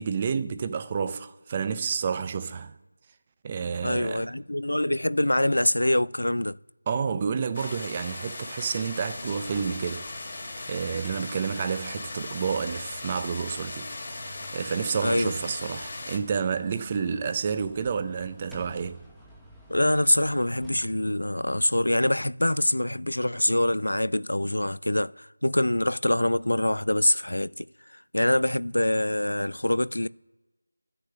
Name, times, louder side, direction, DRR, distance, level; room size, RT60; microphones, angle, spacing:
voice 1, 0.0-2.7 3.4-4.3 6.9-10.1 10.7-13.9 14.5-19.0, right 6 dB, 20° right, 0.6 m, -29 dB
voice 2, 3.8-6.6 15.0-15.3 19.7-27.7 27.9-30.1, left 1 dB, 90° left, 0.4 m, -25 dB
sound 1, 7.5-16.2, left 2 dB, 30° left, 2.0 m, -38 dB
sound 2, 8.9-20.9, equal, ahead, 1.0 m, -52 dB
11.5 x 6.8 x 8.5 m
figure-of-eight pair, 170°, 0 cm